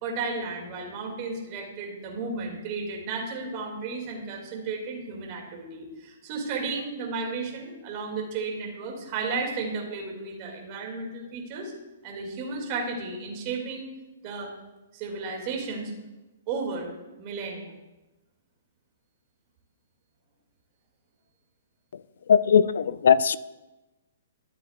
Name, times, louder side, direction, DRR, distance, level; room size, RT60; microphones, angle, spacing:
voice 1, 0.0-11.7 12.0-13.9 14.2-14.5 14.9-15.9 16.5-16.9 17.2-17.8, right 4 dB, 40° right, 0 dB, 2.4 m, -33 dB
voice 2, 21.9-23.4, left 7 dB, 70° left, 17 dB, 0.4 m, -20 dB
13.0 x 7.6 x 2.5 m, 1.1 s
hypercardioid pair, 135°, 0 cm